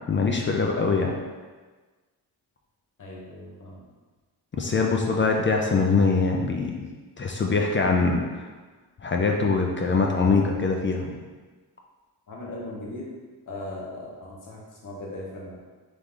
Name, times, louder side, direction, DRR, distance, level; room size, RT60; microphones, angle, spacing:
voice 1, 0.1-1.1 4.6-6.9 7.2-8.5 9.0-11.2, left 4 dB, 30° left, 1 dB, 0.4 m, -23 dB
voice 2, 3.0-3.9 12.3-13.1 13.5-15.6, left 1 dB, 50° left, -4 dB, 1.2 m, -38 dB
3.6 x 3.3 x 3.6 m, 1.3 s
wide cardioid pair, 125°, 39 cm